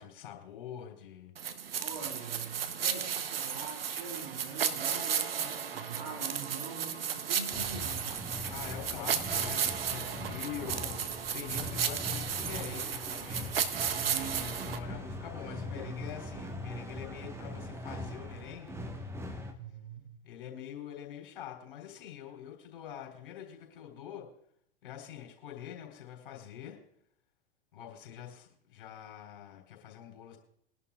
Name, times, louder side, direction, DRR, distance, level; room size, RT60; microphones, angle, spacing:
voice 1, 0.0-1.3 8.5-13.6 14.1-18.8 20.2-24.3 24.8-26.8 27.7-30.4, left 10 dB, 60° left, 3 dB, 4.2 m, -45 dB
sound 1, 1.4-14.8, right 8 dB, 70° right, 1.0 m, -34 dB
voice 2, 1.8-8.2 10.0-10.3 13.9-14.7 19.6-20.2, right 5 dB, 55° right, 1 dB, 2.9 m, -44 dB
sound 2, 7.5-19.5, left 1 dB, 10° right, 1.4 m, -41 dB
22.5 x 11.5 x 2.5 m, 0.69 s
figure-of-eight pair, 90°, 30 cm